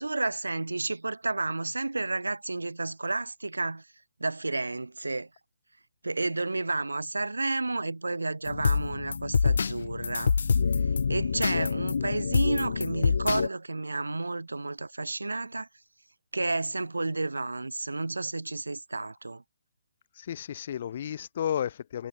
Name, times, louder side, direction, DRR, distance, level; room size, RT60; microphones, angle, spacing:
voice 1, 0.0-3.9 4.2-5.3 6.0-10.3 11.1-15.7 16.3-19.4, right 2 dB, 80° right, 1.7 m, -31 dB
sound 1, 8.5-13.5, left 5 dB, 65° left, 1.2 m, -26 dB
voice 2, 20.1-22.1, left 9 dB, 45° left, 4.9 m, -32 dB
figure-of-eight pair, 140°, 0 cm